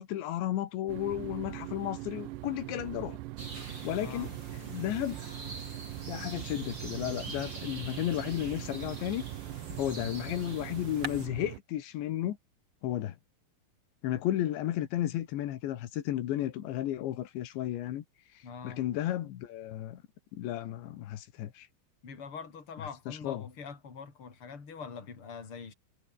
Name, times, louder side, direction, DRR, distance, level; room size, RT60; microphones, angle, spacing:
voice 1, 0.0-3.2 3.8-4.3 4.6-5.2 6.1-9.2 9.8-12.4 12.8-13.2 14.0-18.1 18.6-20.0 20.3-21.7 23.1-23.5, left 13 dB, 85° left, 4.0 m, -33 dB
sound 1, 0.9-11.6, right 18 dB, 80° right, 3.1 m, -41 dB
sound 2, 3.4-11.3, right 2 dB, 25° right, 7.7 m, -44 dB
voice 2, 4.0-4.4 18.4-18.8 22.0-25.7, left 5 dB, 30° left, 4.6 m, -44 dB
omnidirectional pair, 5.0 m